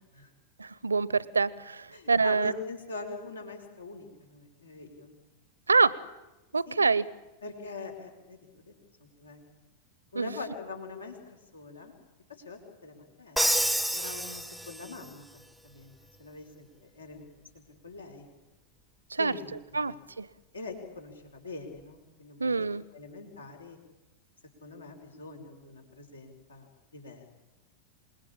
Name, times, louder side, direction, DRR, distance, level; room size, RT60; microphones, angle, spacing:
voice 1, 0.6-2.5 5.7-6.0 6.5-7.1 10.2-10.3 19.1-19.3 19.7-20.3 22.4-22.8, right 4 dB, 75° right, 22 dB, 0.8 m, -26 dB
voice 2, 1.9-5.1 6.7-6.8 7.4-8.7 9.0-9.4 10.1-12.0 12.3-13.6 13.9-17.3 17.5-18.3 19.2-20.0 20.5-23.8 24.6-27.3, left 3 dB, 75° left, 4 dB, 4.8 m, -43 dB
Crash cymbal, 13.4-15.1, right 1 dB, ahead, 0.8 m, -28 dB
27.5 x 21.0 x 8.7 m, 1.1 s
figure-of-eight pair, 90°, 0 cm